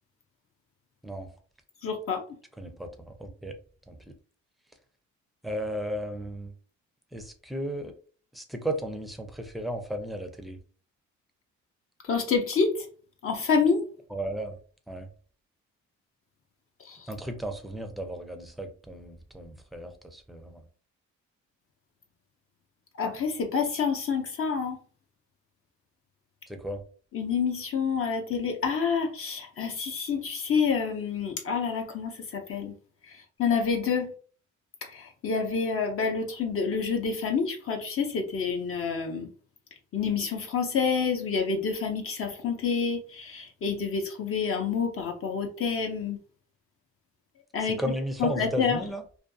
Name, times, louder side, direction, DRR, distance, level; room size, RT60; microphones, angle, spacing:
voice 1, 1.8-2.2 12.1-12.7 13.2-13.8 16.9-17.0 23.0-24.8 27.1-32.1 32.5-32.7 33.4-34.1 34.9-39.3 39.9-46.2 47.5-47.8 48.2-48.8, left 5 dB, 45° left, 3 dB, 0.6 m, -28 dB
voice 2, 2.6-3.5 3.9-4.1 5.4-6.5 7.1-7.9 8.3-10.6 14.1-14.5 14.9-15.1 17.1-20.6 26.5-26.8 47.6-49.1, right 1 dB, ahead, 6 dB, 0.5 m, -35 dB
2.5 x 2.3 x 2.6 m, 0.42 s
cardioid pair, 90°, 30 cm